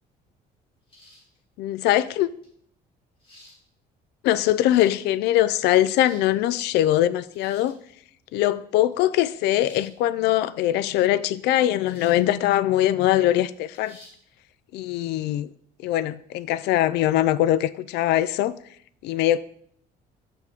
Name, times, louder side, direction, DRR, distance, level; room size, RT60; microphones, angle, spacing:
sound 1, 0.9-1.4 2.4-2.5 3.2-3.6 4.4-5.0 5.7-6.3 7.3-7.8 9.5-9.9 11.8-12.3 12.7-12.8 13.7-14.2, left 1 dB, 30° left, 3.0 m, -51 dB
voice 1, 1.6-2.3 4.2-7.8 8.3-14.0 14.7-15.5 15.8-18.5 19.0-19.4, left 13 dB, 80° left, 0.4 m, -22 dB
6.1 x 5.8 x 3.5 m
cardioid pair, 110°, 17 cm